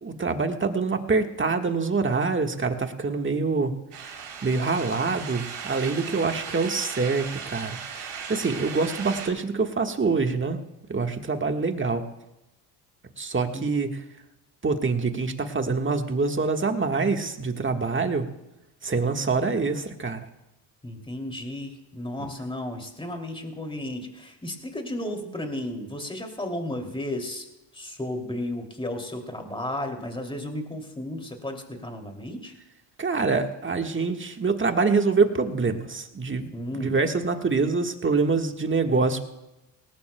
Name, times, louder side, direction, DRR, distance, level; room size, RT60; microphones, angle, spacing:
voice 1, 0.0-3.7 4.4-10.6 10.9-12.0 13.2-14.0 14.6-18.3 18.8-20.2 22.2-22.3 33.0-39.2, right 4 dB, 25° right, 5 dB, 1.5 m, -25 dB
sound 1, 3.9-9.3, right 6 dB, 70° right, 3.5 m, -37 dB
voice 2, 20.8-27.5 27.7-32.5 36.5-37.0, left 1 dB, 10° left, 3 dB, 2.7 m, -33 dB
18.5 x 18.5 x 2.3 m, 0.96 s
supercardioid pair, 70°, 49 cm